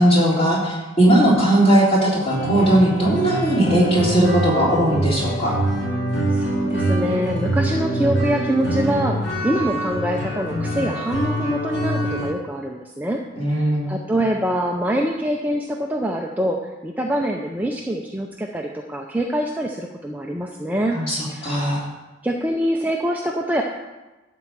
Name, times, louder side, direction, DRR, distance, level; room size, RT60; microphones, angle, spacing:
voice 1, 0.0-5.6 13.4-13.9 20.9-21.8, right 1 dB, 30° left, -5 dB, 3.2 m, -18 dB
sound 1, 2.3-12.3, right 1 dB, 55° left, 2.6 m, -24 dB
voice 2, 6.3-9.2 9.4-13.2 13.5-16.6 16.8-21.0 21.3-21.7 22.2-23.6, equal, 10° right, 0 dB, 0.5 m, -24 dB
11.5 x 4.6 x 7.4 m, 1.1 s
head